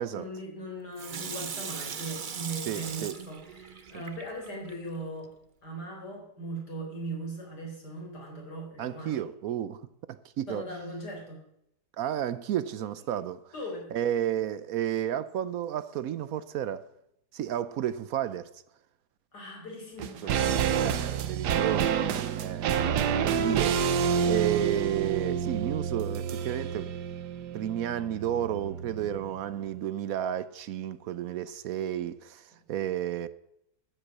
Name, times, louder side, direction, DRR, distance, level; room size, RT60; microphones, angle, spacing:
voice 1, 0.0-5.3 5.6-9.2 10.5-11.4 13.5-13.9 19.3-20.6 21.0-21.1, right 1 dB, 85° left, 4.8 m, -39 dB
Water tap faucet / Sink (filling or washing), 1.0-4.7 5.2-5.3, right 6 dB, 45° right, 0.6 m, -39 dB
voice 2, 2.7-3.2 8.8-10.6 12.0-13.5 13.9-16.9 17.3-18.5 20.2-20.3 20.8-22.0 22.4-23.9 24.2-26.9 27.5-33.3, right 11 dB, 70° right, 1.0 m, -32 dB
sound 1, 20.0-29.4 29.6-29.7, right 7 dB, 90° right, 1.5 m, -29 dB
13.5 x 8.1 x 7.2 m
omnidirectional pair, 1.7 m